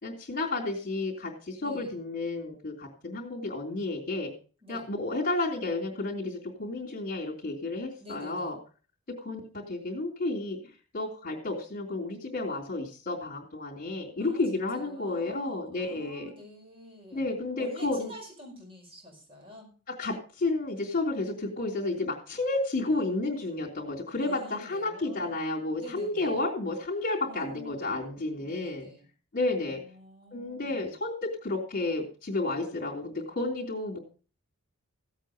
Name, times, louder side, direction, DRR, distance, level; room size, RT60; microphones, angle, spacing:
voice 1, 0.0-4.3 4.7-8.6 9.2-10.6 10.9-16.3 17.1-18.1 19.9-28.9 29.3-29.8 30.3-34.0, left 2 dB, 40° left, -5 dB, 3.2 m, -31 dB
voice 2, 1.6-1.9 4.6-4.9 8.0-8.5 14.2-19.7 24.2-25.4 25.8-26.4 27.2-28.0 28.4-29.1 29.6-30.9, equal, 25° right, 0 dB, 5.1 m, -48 dB
16.0 x 8.2 x 4.9 m, 0.38 s
head